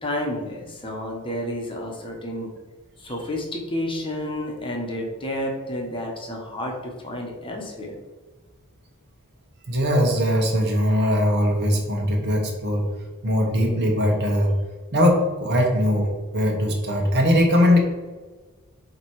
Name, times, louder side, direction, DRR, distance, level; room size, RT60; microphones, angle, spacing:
voice 1, 0.0-2.5 3.0-7.9, left 1 dB, 25° left, 0 dB, 1.1 m, -30 dB
voice 2, 9.7-12.9 13.2-14.5 14.9-17.8, equal, 50° right, 1 dB, 1.3 m, -20 dB
7.7 x 3.0 x 4.6 m, 1.3 s
head